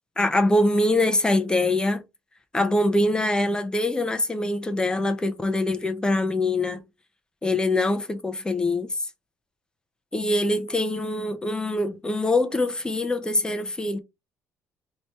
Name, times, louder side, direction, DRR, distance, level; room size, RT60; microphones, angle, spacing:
voice 1, 0.2-2.0 2.5-6.8 7.4-8.9 10.1-14.0, left 2 dB, 15° left, 0.5 m, -23 dB
3.1 x 2.8 x 4.4 m
cardioid pair, 115°, 6 cm